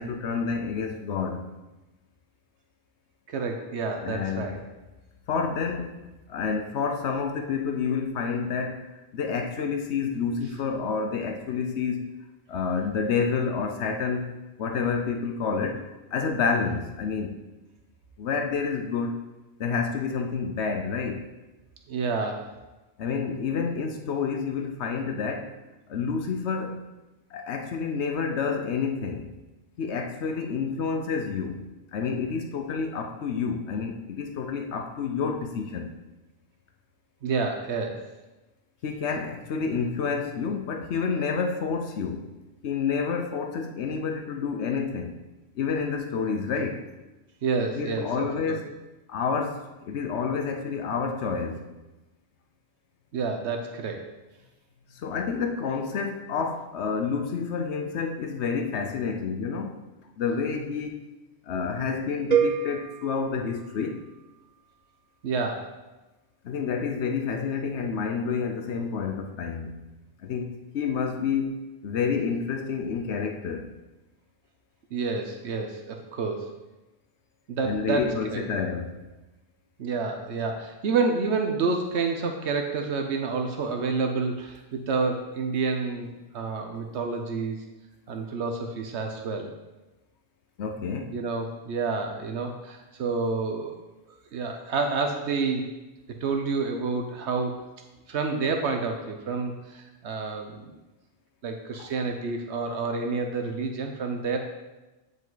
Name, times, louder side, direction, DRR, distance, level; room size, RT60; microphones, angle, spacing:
voice 1, 0.0-1.4 4.0-4.6 5.3-12.1 12.5-14.3 14.6-15.9 16.1-17.4 18.2-19.2 19.6-21.2 23.0-25.5 25.9-26.8 27.3-29.3 29.8-35.9 38.8-42.3 42.6-45.1 45.5-46.8 47.7-48.7 49.1-51.7 54.9-59.8 60.2-61.1 61.5-64.0 66.4-69.8 70.2-73.7 77.6-78.9 90.6-91.2 101.8-101.9, left 5 dB, 85° left, 4 dB, 1.0 m, -29 dB
voice 2, 3.3-4.6 16.6-16.7 21.9-22.5 37.2-38.0 47.4-48.6 53.1-54.0 65.2-65.7 74.9-76.5 77.5-78.5 79.8-87.6 88.1-89.5 91.1-93.8 94.3-95.7 96.2-97.6 98.1-100.8 101.4-104.4, right 4 dB, 85° right, 4 dB, 1.1 m, -29 dB
sound 1, 62.3-64.4, right 7 dB, 45° right, 0.7 m, -28 dB
9.3 x 5.3 x 3.9 m, 1.1 s
omnidirectional pair, 1.1 m